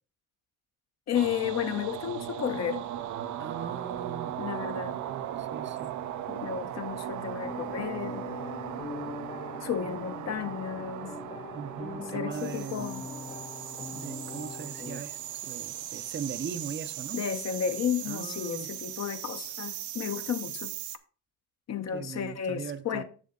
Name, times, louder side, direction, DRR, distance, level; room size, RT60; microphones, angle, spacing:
voice 1, 1.1-2.9 4.4-5.0 6.3-8.3 9.6-11.1 12.0-13.1 17.1-20.7 21.7-23.0, left 8 dB, 60° left, 1.0 m, -32 dB
sound 1, 1.1-21.0, right 11 dB, 80° right, 0.7 m, -38 dB
voice 2, 3.4-4.4 5.4-5.9 11.5-12.9 13.9-17.2 18.0-18.7 21.9-23.0, right 7 dB, 40° right, 0.7 m, -39 dB
sound 2, 7.4-15.0, left 4 dB, 20° left, 0.5 m, -42 dB
7.3 x 6.9 x 3.8 m
cardioid pair, 90°, 30 cm